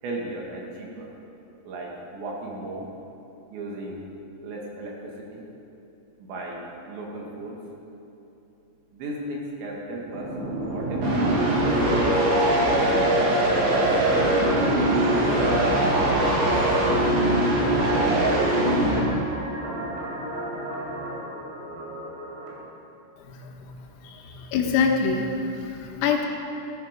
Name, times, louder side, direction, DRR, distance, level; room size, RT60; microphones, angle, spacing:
voice 1, 0.0-1.1 1.7-2.9 3.5-4.0 4.4-5.4 6.2-7.6 8.9-10.3 10.7-11.6 12.5-13.9 15.1-15.3, right 2 dB, 65° right, -2 dB, 3.8 m, -36 dB
sound 1, 10.0-19.0, right 1 dB, 45° right, 2.3 m, -22 dB
sound 2, 11.2-22.5, right 2 dB, 85° right, 5.4 m, -35 dB
voice 2, 23.3-23.7 24.0-25.3 25.8-26.3, left 6 dB, 85° left, 2 dB, 3.9 m, -25 dB
17.0 x 10.5 x 5.1 m, 2.9 s
omnidirectional pair, 6.0 m